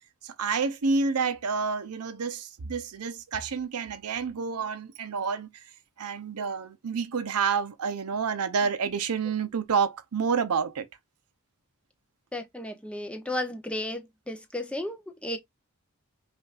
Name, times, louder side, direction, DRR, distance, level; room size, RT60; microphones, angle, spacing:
voice 1, 0.2-5.6 6.0-10.9, right 5 dB, 90° right, 0.6 m, -29 dB
voice 2, 12.3-15.4, left 1 dB, 5° left, 0.6 m, -34 dB
5.3 x 2.5 x 2.4 m
head